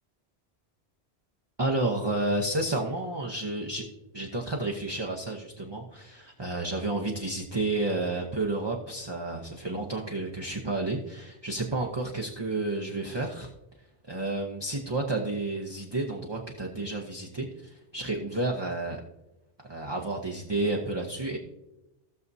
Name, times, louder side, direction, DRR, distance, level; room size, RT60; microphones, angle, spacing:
voice 1, 1.6-3.9 4.1-13.5 14.1-19.0 19.7-21.4, right 2 dB, 25° right, -1 dB, 0.8 m, -31 dB
16.0 x 6.7 x 2.7 m, 0.95 s
omnidirectional pair, 1.1 m